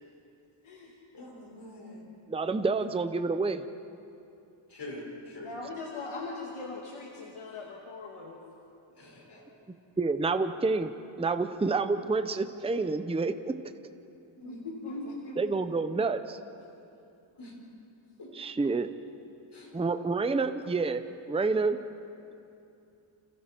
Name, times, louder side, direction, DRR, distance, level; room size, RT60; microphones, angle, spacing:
voice 1, 1.1-2.1 2.6-2.7 4.7-5.6 9.0-9.4 14.4-14.6 14.9-15.7 17.4-17.5 18.2-18.3 19.5-19.7, left 1 dB, 55° left, -1 dB, 5.2 m, -43 dB
voice 2, 2.3-3.7 10.0-10.9 11.2-13.6 15.4-16.4 18.3-18.9 19.7-21.8, right 3 dB, 10° right, 10 dB, 0.6 m, -28 dB
voice 3, 5.4-8.4 14.5-15.0 15.6-15.7, left 3 dB, 85° left, -2 dB, 2.3 m, -40 dB
29.5 x 26.5 x 4.5 m, 2.7 s
wide cardioid pair, 160°, 49 cm